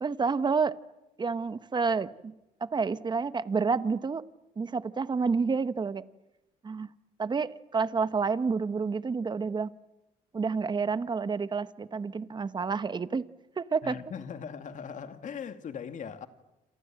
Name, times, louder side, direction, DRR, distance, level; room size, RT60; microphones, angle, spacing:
voice 1, 0.0-0.8 1.2-2.3 2.6-4.2 4.6-6.0 6.6-6.9 7.2-9.7 10.3-13.2 13.6-13.9, right 5 dB, 25° right, 1.1 m, -29 dB
voice 2, 13.8-16.3, left 7 dB, 50° left, 2.4 m, -39 dB
28.5 x 27.5 x 7.7 m
cardioid pair, 110°, 17 cm